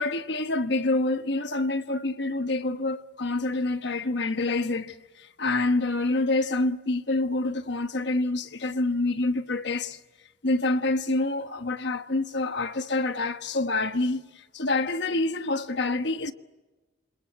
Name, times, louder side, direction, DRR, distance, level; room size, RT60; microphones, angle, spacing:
voice 1, 0.0-10.0 10.4-16.3, left 2 dB, 60° left, 1.3 m, -27 dB
28.0 x 26.5 x 8.0 m
head